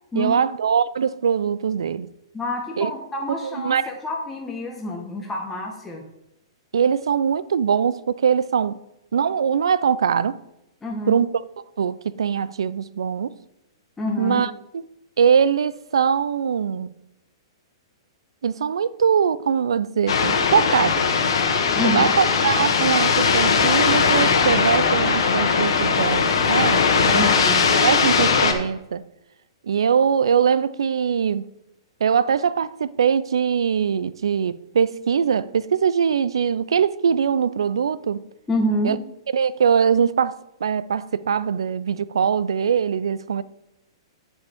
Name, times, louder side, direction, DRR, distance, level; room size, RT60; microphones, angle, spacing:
voice 1, 0.1-2.1 2.8-2.9 3.4-3.8 6.7-8.8 9.1-10.4 11.1-11.3 11.8-13.3 14.2-14.5 15.2-16.9 18.4-21.1 21.8-27.5 27.8-29.1 29.6-31.4 32.0-38.2 38.8-39.0 39.3-43.4, right 7 dB, 80° right, 0.4 m, -22 dB
voice 2, 2.3-6.0 10.8-11.2 14.0-14.4 21.8-22.1 27.1-27.6 38.5-39.0, left 1 dB, 10° left, 1.2 m, -27 dB
sound 1, 20.1-28.5, left 5 dB, 75° left, 1.4 m, -19 dB
13.0 x 5.4 x 3.5 m
hypercardioid pair, 125°, 3 cm